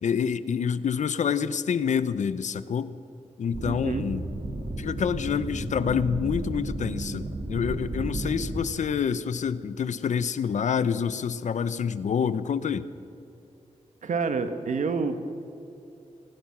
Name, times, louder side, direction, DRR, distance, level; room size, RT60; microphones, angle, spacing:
voice 1, 0.0-3.0 3.4-4.2 4.8-12.9, left 7 dB, 65° left, 15 dB, 0.8 m, -27 dB
sound 1, 3.5-8.6, right 2 dB, 40° right, 2.5 m, -33 dB
voice 2, 3.7-4.1 14.0-15.3, right 4 dB, 70° right, 8 dB, 1.7 m, -28 dB
25.0 x 17.5 x 6.1 m, 2.9 s
wide cardioid pair, 170°, 13 cm